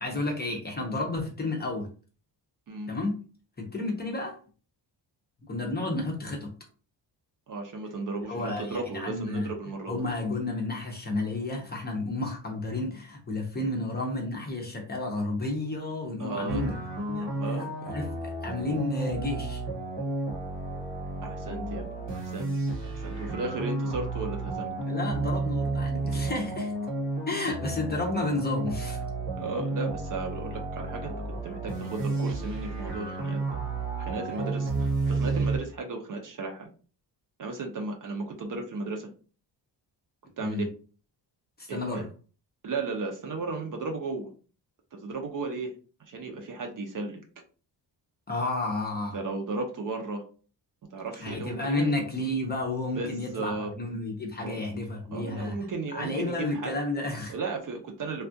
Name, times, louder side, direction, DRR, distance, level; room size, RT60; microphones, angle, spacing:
voice 1, 0.0-1.9 2.9-3.2 3.6-4.4 5.4-6.5 8.3-9.5 9.9-16.8 17.1-17.3 17.6-19.6 24.8-26.7 27.3-29.0 40.4-40.7 41.6-42.1 48.3-49.2 51.2-57.3, left 2 dB, 25° left, 0.6 m, -31 dB
voice 2, 7.5-9.9 16.2-16.6 17.4-17.7 21.2-22.5 22.8-24.7 29.4-31.2 31.4-33.5 34.0-36.7 37.4-39.1 40.4-40.7 41.7-42.0 42.6-44.3 44.9-45.7 46.1-47.2 49.1-50.2 50.9-51.9 52.9-53.7 54.4-54.6 55.1-56.7 57.3-58.3, right 3 dB, 45° right, 0.6 m, -35 dB
sound 1, 16.5-35.6, right 3 dB, 75° right, 1.2 m, -32 dB
3.4 x 2.3 x 2.6 m
wide cardioid pair, 175°, 44 cm